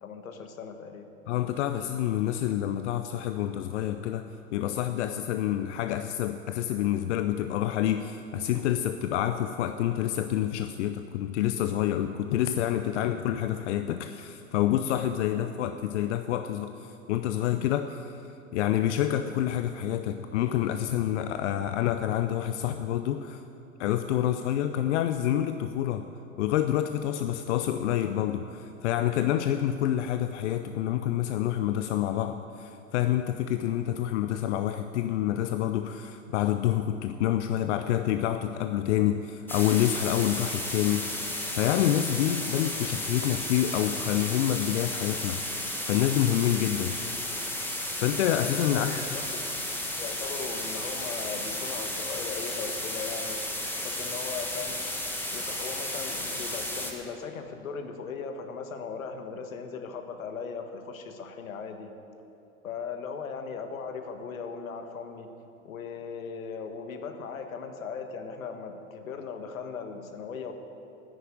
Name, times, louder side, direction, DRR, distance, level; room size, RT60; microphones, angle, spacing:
voice 1, 0.0-1.1 48.7-49.2 50.0-53.4 53.8-54.8 55.3-61.9 62.6-65.3 65.6-70.5, left 5 dB, 75° left, 6 dB, 1.5 m, -38 dB
voice 2, 1.3-18.2 18.5-23.4 23.8-26.1 26.4-41.1 41.5-45.4 45.9-46.9 48.0-49.1, left 11 dB, 55° left, 9 dB, 0.7 m, -27 dB
sound 1, 39.5-56.9, left 1 dB, 5° left, 1.9 m, -33 dB
10.0 x 9.9 x 9.4 m, 2.9 s
hypercardioid pair, 95°, 41 cm